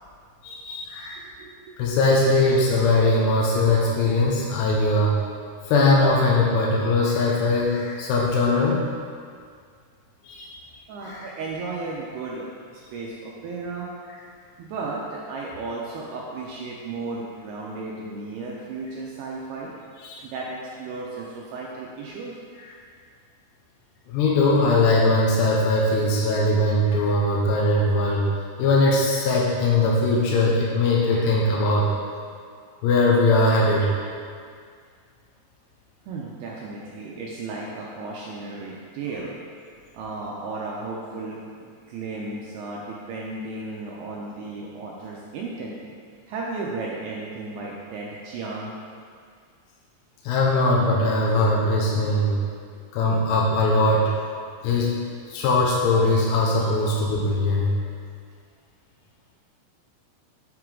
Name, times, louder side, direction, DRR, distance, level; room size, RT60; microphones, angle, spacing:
voice 1, 0.4-1.2 1.8-5.1 5.6-8.8 10.2-10.5 11.0-11.3 20.0-20.2 24.1-28.3 28.6-31.9 32.8-33.9 50.2-52.4 52.9-54.0 54.6-55.0 55.3-57.7, left 2 dB, 85° left, -4 dB, 2.7 m, -20 dB
voice 2, 10.9-12.5 12.7-13.9 14.6-19.7 20.2-22.4 36.1-39.4 39.9-45.8 46.3-48.7 52.7-52.8 53.7-53.8, right 3 dB, 80° right, -4 dB, 2.3 m, -34 dB
7.6 x 4.6 x 3.7 m, 2.1 s
omnidirectional pair, 5.2 m